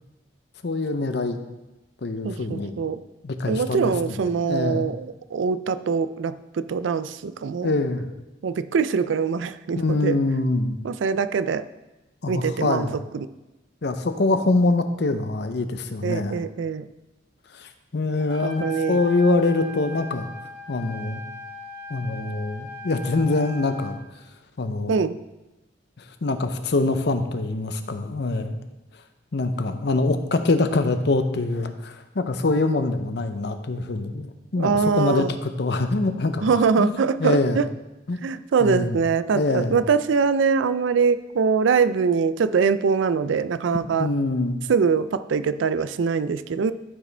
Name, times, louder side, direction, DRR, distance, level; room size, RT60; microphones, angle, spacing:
voice 1, 0.6-1.4 2.0-2.8 3.2-4.9 7.6-8.1 9.8-10.8 12.2-12.9 13.8-16.4 17.5-20.3 20.7-21.2 21.9-24.0 24.6-25.0 26.2-28.6 29.3-36.5 36.8-37.6 38.1-38.2 38.6-39.0 39.3-39.8 44.0-44.6, left 2 dB, 60° left, 8 dB, 0.6 m, -24 dB
voice 2, 2.2-3.0 3.5-7.8 8.4-10.2 10.8-11.6 12.3-13.3 16.0-16.9 18.4-19.0 24.9-25.2 34.6-35.3 36.4-37.7 38.2-44.1 44.7-46.7, right 5 dB, 80° right, 13 dB, 0.4 m, -23 dB
Trumpet, 18.2-24.0, left 2 dB, 55° right, 2.2 m, -39 dB
13.5 x 4.9 x 3.3 m, 1.0 s
head